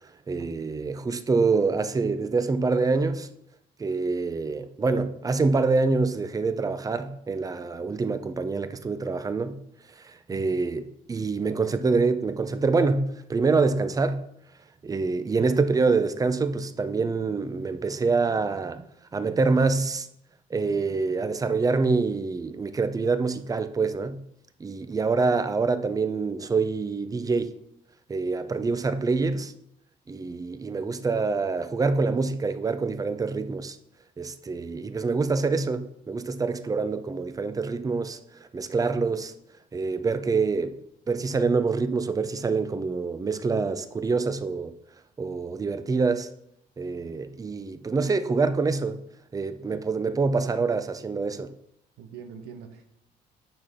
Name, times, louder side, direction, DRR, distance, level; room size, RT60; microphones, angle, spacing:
voice 1, 0.3-3.3 3.8-9.6 10.0-14.2 14.8-18.8 19.1-20.1 20.5-24.2 24.6-27.5 28.1-29.5 30.1-33.8 34.2-38.2 38.5-39.3 39.7-40.7 41.1-44.7 45.2-46.3 46.8-49.0 49.3-51.5, right 4 dB, 20° right, 0.6 m, -26 dB
voice 2, 10.3-10.6 15.4-15.8 29.2-29.4 52.0-52.8, right 6 dB, 85° right, 1.2 m, -43 dB
8.8 x 6.0 x 3.7 m
cardioid pair, 110°, 17 cm